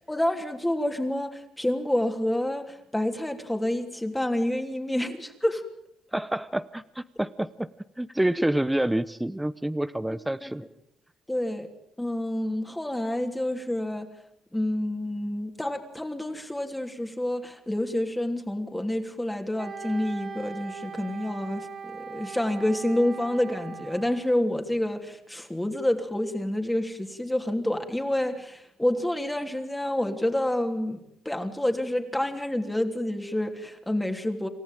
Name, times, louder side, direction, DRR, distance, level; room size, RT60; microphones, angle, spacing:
voice 1, 0.1-5.6 10.1-10.5 11.3-11.7 12.0-14.1 14.5-31.0 31.2-34.5, left 1 dB, 10° left, 4 dB, 3.1 m, -28 dB
voice 2, 6.1-7.7 8.0-10.6, right 1 dB, 10° right, 14 dB, 0.9 m, -28 dB
Wind instrument woodwind instrument, 19.6-24.4, right 6 dB, 45° right, 2.0 m, -40 dB
27.5 x 14.0 x 9.2 m, 0.79 s
supercardioid pair, 70°, 0 cm